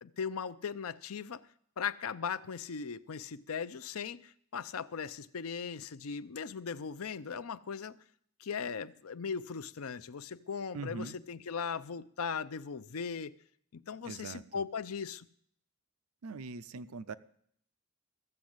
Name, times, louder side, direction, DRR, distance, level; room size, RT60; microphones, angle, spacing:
voice 1, 0.0-1.5 1.8-8.0 8.4-13.3 13.7-15.3, left 6 dB, 65° left, 0.6 m, -38 dB
voice 2, 10.7-11.2 14.0-14.4 16.2-17.1, right 4 dB, 70° right, 0.6 m, -41 dB
14.5 x 7.3 x 7.8 m
head